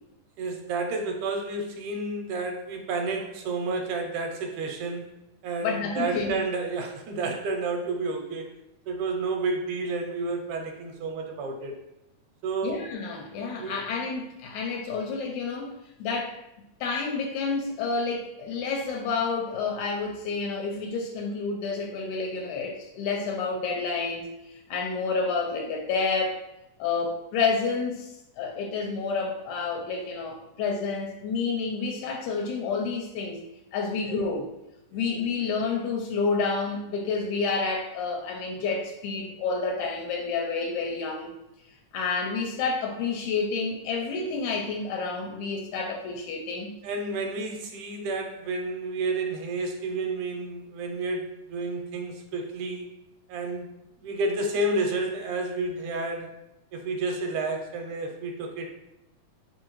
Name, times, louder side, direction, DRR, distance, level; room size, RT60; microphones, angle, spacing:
voice 1, 0.4-5.1 5.4-8.5 8.9-11.8 12.4-12.8 13.3-13.9 34.0-34.2 46.8-52.9 53.3-53.7 54.0-56.4 56.7-58.7, right 3 dB, 80° right, 3 dB, 2.0 m, -30 dB
voice 2, 5.6-6.3 12.6-15.7 16.0-16.4 16.8-26.4 26.8-33.4 33.7-34.4 34.9-41.3 41.9-46.7 47.2-47.3, left 4 dB, 85° left, 0 dB, 2.0 m, -29 dB
4.6 x 3.6 x 3.0 m, 0.91 s
omnidirectional pair, 3.5 m